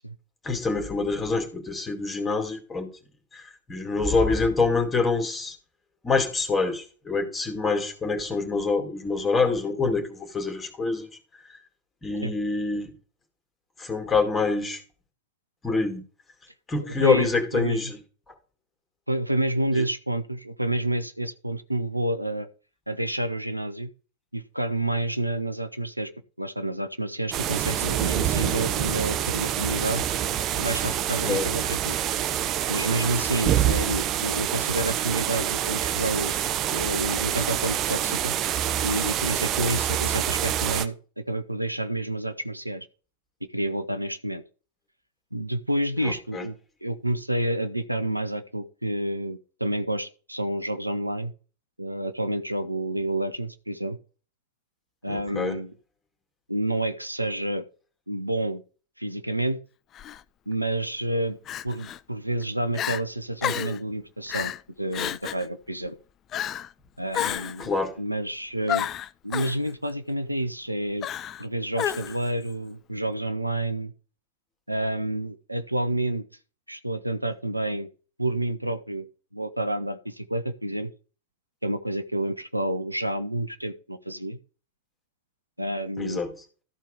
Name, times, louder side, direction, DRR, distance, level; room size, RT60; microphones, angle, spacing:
voice 1, 0.4-2.9 3.3-5.6 6.0-11.1 11.5-11.6 12.0-12.9 13.8-14.8 15.6-16.0 16.7-18.0 19.8-19.9 31.2-31.5 46.0-46.5 55.1-55.6 67.6-68.0 86.0-86.3, left 4 dB, 15° left, 2.2 m, -26 dB
voice 2, 17.0-17.9 19.1-22.5 22.9-23.9 24.3-26.1 26.4-30.0 30.6-32.0 32.7-36.3 36.7-38.3 38.8-42.9 43.5-44.4 45.3-46.6 46.8-51.3 51.8-54.0 55.0-55.7 56.5-57.6 58.1-58.6 59.0-59.6 60.5-61.4 61.6-64.5 64.8-66.0 67.0-67.7 68.0-68.9 69.2-71.1 71.4-73.9 74.7-76.2 76.7-77.9 78.2-79.1 79.3-80.9 81.6-84.4 85.6-86.2, right 1 dB, 90° right, 0.8 m, -29 dB
sound 1, 27.3-40.8, right 11 dB, 35° right, 1.0 m, -26 dB
Crying sobbing, 59.9-60.2 61.5-62.0 62.4-62.5 62.7-63.0 63.4-63.8 64.3-64.6 64.9-65.5 66.3-66.7 67.1-67.7 68.7-69.6 71.0-71.4 71.8-72.3, left 10 dB, 30° left, 0.4 m, -30 dB
13.5 x 4.5 x 4.9 m
figure-of-eight pair, 90°, 0 cm